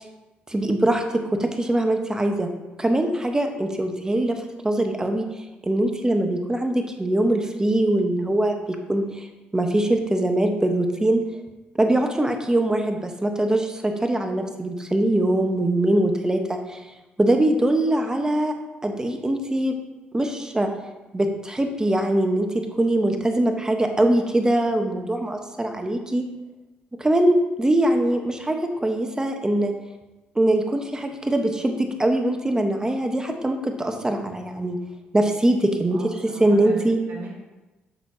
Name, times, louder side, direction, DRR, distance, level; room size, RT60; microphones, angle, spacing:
voice 1, 0.5-2.5 2.8-5.3 5.7-9.3 9.5-11.2 11.7-16.8 17.2-18.5 18.8-19.7 20.1-20.7 21.1-26.2 27.0-29.7 30.3-34.8 35.1-36.0 36.4-37.0, right 1 dB, 15° right, 5 dB, 1.1 m, -22 dB
voice 2, 35.9-37.3, right 3 dB, 65° right, -2 dB, 2.0 m, -39 dB
8.2 x 6.5 x 2.9 m, 1.1 s
supercardioid pair, 60°, 4 cm